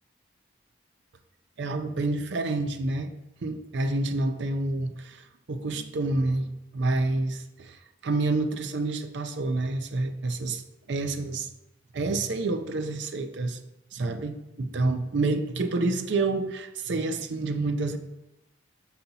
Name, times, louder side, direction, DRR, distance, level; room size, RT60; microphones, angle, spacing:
voice 1, 1.6-3.1 3.4-10.6 10.9-11.5 11.9-13.6 13.9-18.0, right 2 dB, 65° right, 8 dB, 0.5 m, -28 dB
5.6 x 4.2 x 4.0 m, 0.94 s
head